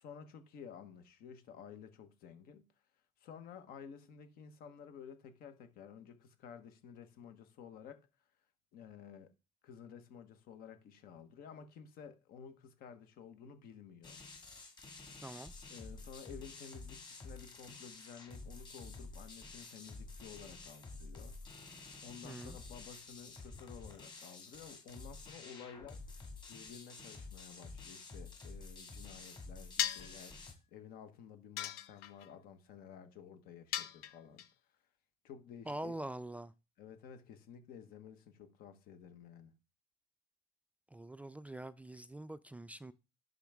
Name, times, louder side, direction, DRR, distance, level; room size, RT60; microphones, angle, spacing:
voice 1, 0.0-2.6 3.2-8.1 8.7-9.3 9.6-14.2 15.7-21.7 22.0-26.0 26.5-34.4 35.2-35.9 36.8-39.5, left 7 dB, 75° left, 1.2 m, -53 dB
sound 1, 14.0-30.5, left 3 dB, 30° left, 2.1 m, -50 dB
voice 2, 15.2-15.5 22.2-22.6 35.7-36.5 40.9-42.9, right 1 dB, 10° right, 0.3 m, -44 dB
sound 2, 29.8-30.2 31.6-32.3 33.7-34.5, left 12 dB, 90° left, 0.6 m, -37 dB
11.0 x 3.8 x 3.5 m
cardioid pair, 105°, 15 cm